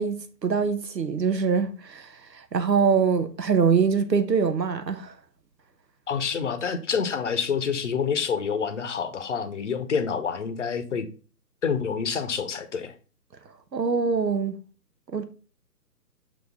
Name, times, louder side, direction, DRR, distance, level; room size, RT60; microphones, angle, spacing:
voice 1, 0.0-5.1 13.7-14.6 15.1-15.2, right 6 dB, 80° right, 1.0 m, -24 dB
voice 2, 6.1-11.1 11.6-12.9, left 6 dB, 45° left, 0.8 m, -27 dB
6.6 x 4.1 x 3.5 m
figure-of-eight pair, 145°, 49 cm